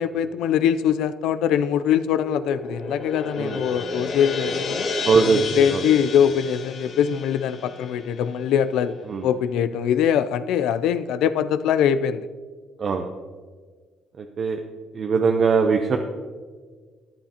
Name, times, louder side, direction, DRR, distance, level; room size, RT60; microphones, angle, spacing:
voice 1, 0.0-4.9 5.2-9.0 9.2-12.3, left 9 dB, 80° left, 13 dB, 0.4 m, -22 dB
sound 1, 2.1-8.6, left 3 dB, 55° left, 1.7 m, -32 dB
voice 2, 5.0-5.4 5.7-5.8 9.1-9.2 12.8-13.1 14.2-14.6 14.9-16.0, right 5 dB, 55° right, 4 dB, 0.7 m, -20 dB
13.5 x 9.2 x 2.9 m, 1.5 s
cardioid pair, 80°, 0 cm